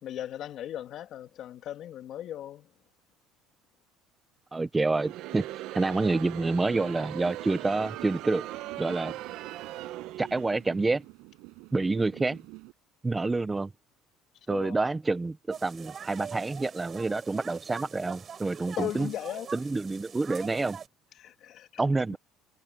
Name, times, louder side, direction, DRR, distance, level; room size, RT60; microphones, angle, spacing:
voice 1, 0.0-2.7 14.5-14.8 18.8-19.5 21.2-21.7 22.1-22.2, left 11 dB, 45° left, 2.6 m, -37 dB
voice 2, 4.5-5.4 5.7-8.5 8.8-9.1 10.2-11.0 11.7-12.4 13.0-13.7 14.5-19.1 19.5-20.8 21.8-22.2, right 3 dB, 10° right, 0.7 m, -28 dB
Crowd, 4.9-10.6, right 15 dB, 60° right, 1.1 m, -40 dB
sound 1, 7.2-12.7, right 26 dB, 80° right, 5.7 m, -48 dB
sound 2, 15.5-20.9, right 7 dB, 25° right, 5.8 m, -42 dB
cardioid pair, 160°, 0 cm